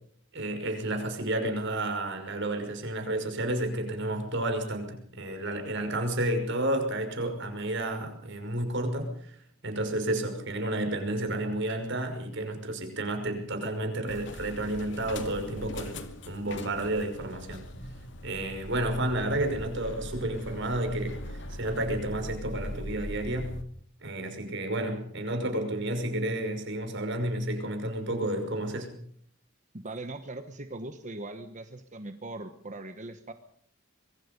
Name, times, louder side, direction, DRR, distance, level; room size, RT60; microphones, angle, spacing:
voice 1, 0.3-16.0 16.3-17.6 18.2-23.5 24.0-28.9, right 1 dB, 60° right, 5 dB, 5.7 m, -31 dB
sound 1, 14.1-23.6, left 1 dB, 60° left, 2.5 m, -41 dB
voice 2, 29.7-33.3, right 2 dB, 35° right, 8 dB, 1.2 m, -40 dB
25.5 x 23.0 x 5.3 m, 0.63 s
head